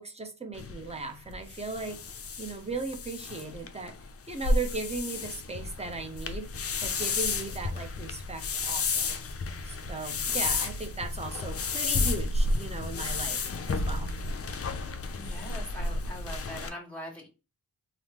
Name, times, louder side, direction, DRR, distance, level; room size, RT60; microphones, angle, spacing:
voice 1, 0.0-2.0 2.4-3.9 4.3-6.5 6.8-9.2 9.7-14.1, right 3 dB, 15° right, 5 dB, 0.7 m, -37 dB
sound 1, 0.5-16.7, left 3 dB, 35° left, 0.4 m, -32 dB
voice 2, 15.1-17.3, equal, 5° left, -3 dB, 1.4 m, -42 dB
3.4 x 2.0 x 2.9 m, 0.30 s
cardioid pair, 60°, 41 cm